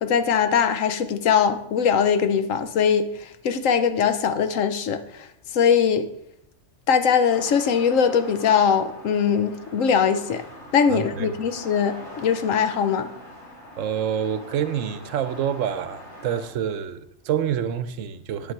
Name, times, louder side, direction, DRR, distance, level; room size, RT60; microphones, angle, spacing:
voice 1, 0.0-6.1 6.9-10.4 10.7-13.1, left 7 dB, 85° left, 1.2 m, -21 dB
sound 1, 7.3-16.5, left 1 dB, 60° left, 3.2 m, -43 dB
voice 2, 10.9-11.3 13.8-18.5, right 9 dB, 80° right, 1.0 m, -27 dB
9.5 x 7.1 x 4.7 m
omnidirectional pair, 1.3 m